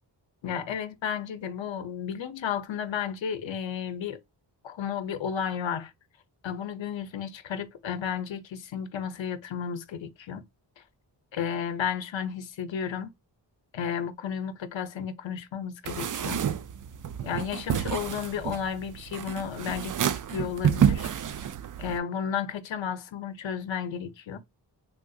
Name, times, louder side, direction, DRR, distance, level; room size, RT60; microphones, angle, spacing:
voice 1, 0.4-4.2 4.6-5.9 6.4-10.4 11.3-13.1 13.7-16.4 17.2-20.0 20.3-21.1 21.8-24.4, left 7 dB, 85° left, 0.7 m, -33 dB
sound 1, 15.8-22.0, right 9 dB, 45° right, 0.4 m, -29 dB
3.5 x 2.6 x 2.3 m
cardioid pair, 60°, 44 cm